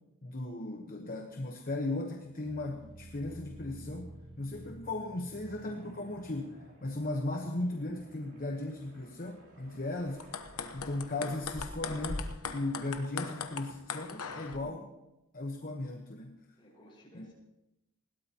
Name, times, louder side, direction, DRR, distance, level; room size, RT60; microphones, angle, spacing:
voice 1, 0.2-10.4 10.7-14.9 15.3-16.4 17.1-17.3, left 2 dB, 40° left, 3 dB, 1.1 m, -37 dB
sound 1, 2.2-9.3 9.5-10.0 10.3-10.4, right 1 dB, 80° right, 5.1 m, -52 dB
sound 2, 5.5-11.1, right 2 dB, 65° right, 3.4 m, -60 dB
sound 3, 10.2-14.6, left 5 dB, 90° left, 1.0 m, -39 dB
voice 2, 16.6-17.3, equal, 25° left, -4 dB, 5.3 m, -57 dB
20.5 x 17.0 x 2.9 m, 0.93 s
head